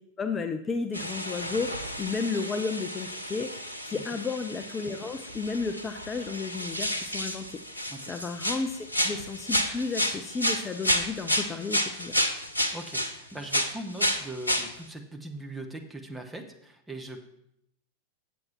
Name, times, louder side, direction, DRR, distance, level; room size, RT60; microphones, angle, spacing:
voice 1, 0.2-12.1, left 4 dB, 20° left, 7 dB, 0.5 m, -33 dB
sound 1, 0.9-13.2 13.5-14.7, equal, 85° left, 0.7 m, -31 dB
voice 2, 12.7-17.3, right 2 dB, 10° right, 4 dB, 1.0 m, -40 dB
7.8 x 7.2 x 4.4 m, 0.77 s
figure-of-eight pair, 90°, 0 cm